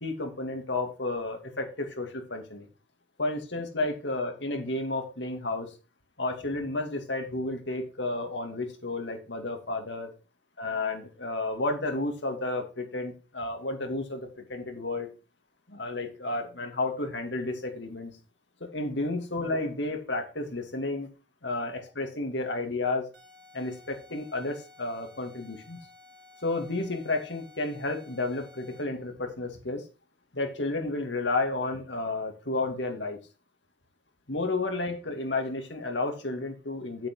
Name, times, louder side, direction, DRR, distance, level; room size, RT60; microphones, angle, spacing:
voice 1, 0.0-2.7 3.2-5.7 6.2-10.1 10.6-15.1 15.7-18.1 18.6-21.1 21.4-23.1 23.5-25.8 26.4-29.8 30.3-33.2 34.3-37.1, left 2 dB, 80° left, 4 dB, 2.7 m, -32 dB
sound 1, 23.1-29.0, left 3 dB, 65° right, 3.6 m, -55 dB
8.8 x 8.5 x 4.7 m, 0.32 s
head